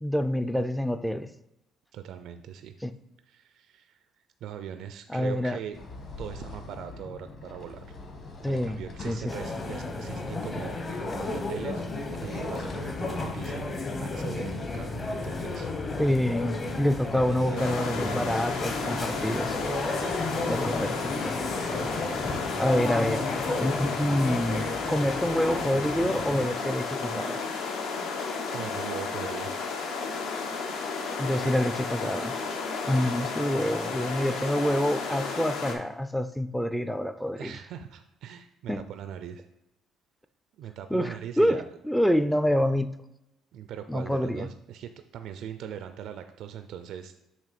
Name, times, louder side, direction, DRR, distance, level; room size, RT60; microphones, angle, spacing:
voice 1, 0.0-1.3 2.8-2.9 5.1-5.6 8.4-9.2 16.0-19.7 20.5-21.3 22.6-23.2 23.6-27.4 31.2-32.3 32.8-37.5 38.7-38.8 40.9-42.9 43.9-44.5, equal, ahead, 11 dB, 0.3 m, -27 dB
voice 2, 1.9-2.7 3.3-4.0 4.4-5.8 6.2-7.8 8.5-11.1 11.5-11.9 12.2-13.7 14.0-15.7 16.2-16.3 17.0-18.0 28.5-29.5 37.3-39.4 40.6-41.6 43.5-47.1, right 9 dB, 65° right, 8 dB, 0.4 m, -40 dB
sound 1, 5.7-23.2, left 3 dB, 40° left, 1.3 m, -44 dB
sound 2, 9.3-26.5, left 2 dB, 25° left, 0.8 m, -33 dB
sound 3, 17.5-35.7, left 4 dB, 80° left, 1.1 m, -33 dB
7.3 x 2.9 x 5.8 m, 0.90 s
cardioid pair, 145°, 0 cm